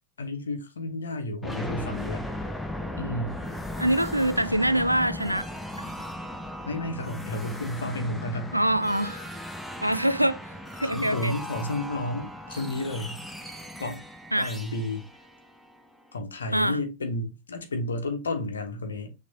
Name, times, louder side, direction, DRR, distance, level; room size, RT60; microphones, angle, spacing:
voice 1, 0.2-2.3 3.0-3.4 6.7-8.5 10.8-13.2 13.8-14.0 14.4-15.1 16.1-19.1, left 2 dB, 70° left, 0.9 m, -32 dB
sound 1, 1.4-16.1, left 1 dB, 5° left, 0.7 m, -37 dB
voice 2, 3.8-5.5 5.8-5.9 8.5-9.3 9.8-10.4 10.8-11.3 14.3-14.5 16.5-16.8, right 1 dB, 90° right, 0.3 m, -24 dB
6.1 x 2.9 x 2.7 m
figure-of-eight pair, 90°, 0 cm